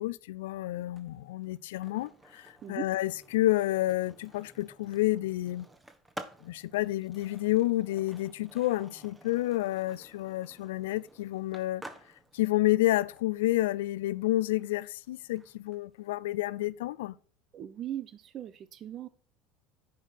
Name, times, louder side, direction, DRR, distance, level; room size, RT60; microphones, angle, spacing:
voice 1, 0.0-5.7 6.4-11.8 12.3-17.1, left 16 dB, 75° left, 0.4 m, -30 dB
Skateboard, 0.8-16.7, right 2 dB, 15° right, 1.4 m, -52 dB
voice 2, 17.5-19.1, right 11 dB, 45° right, 0.7 m, -39 dB
10.5 x 4.9 x 5.7 m
hypercardioid pair, 75°, 0 cm